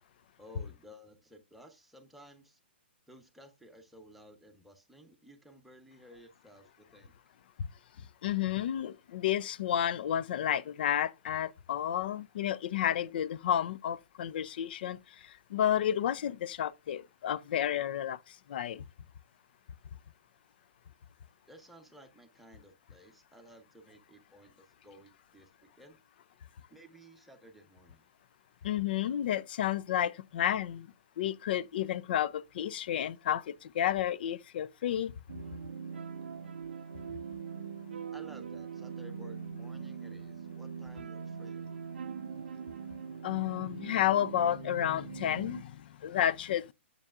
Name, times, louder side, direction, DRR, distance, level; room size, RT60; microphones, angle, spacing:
voice 1, 0.4-2.6 3.1-7.1 21.5-26.0 26.7-28.0 38.1-41.7, equal, ahead, 1.0 m, -55 dB
voice 2, 8.2-15.0 15.2-18.2 18.5-18.8 28.6-30.9 31.2-35.1 43.2-46.7, left 10 dB, 55° left, 0.4 m, -31 dB
sound 1, 35.3-45.6, right 6 dB, 75° right, 0.5 m, -42 dB
7.1 x 6.7 x 2.4 m
hypercardioid pair, 135°, 6 cm